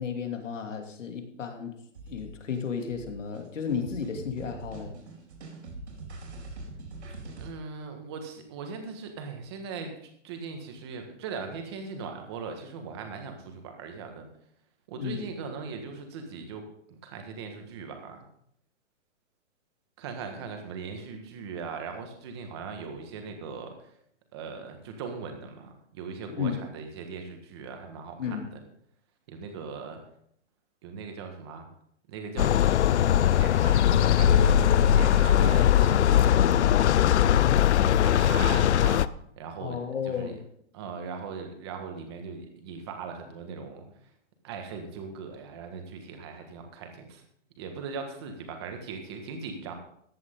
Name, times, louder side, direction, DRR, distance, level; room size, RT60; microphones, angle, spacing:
voice 1, 0.0-1.8 2.1-5.0 14.9-15.3 26.3-26.6 28.2-28.5 39.6-40.4, left 6 dB, 90° left, 4 dB, 2.8 m, -33 dB
sound 1, 1.9-7.5, right 3 dB, 70° right, 4.5 m, -43 dB
voice 2, 7.4-14.3 14.9-18.2 20.0-23.7 24.3-28.6 29.3-30.0 30.8-31.7 32.1-33.0 33.3-36.7 37.8-39.1 39.4-40.3 40.7-43.9 44.4-47.2 47.6-49.7, right 5 dB, 20° right, 4 dB, 1.5 m, -39 dB
sound 2, 32.4-39.1, left 10 dB, 70° left, 0.6 m, -20 dB
14.5 x 10.5 x 3.8 m, 0.68 s
hypercardioid pair, 180°, 36 cm